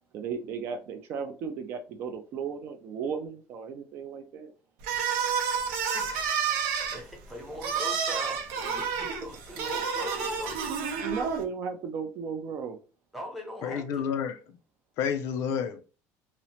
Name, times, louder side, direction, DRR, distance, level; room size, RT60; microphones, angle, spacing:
voice 1, 0.1-4.5 10.9-12.8, right 6 dB, 40° right, 0.4 m, -35 dB
sound 1, 4.8-11.4, right 6 dB, 85° right, 0.6 m, -30 dB
voice 2, 5.9-6.6 6.9-10.7 13.1-14.1, left 1 dB, ahead, 0.7 m, -42 dB
voice 3, 13.6-14.4 15.0-15.8, left 7 dB, 50° left, 0.3 m, -29 dB
2.8 x 2.0 x 2.7 m
cardioid pair, 175°, 6 cm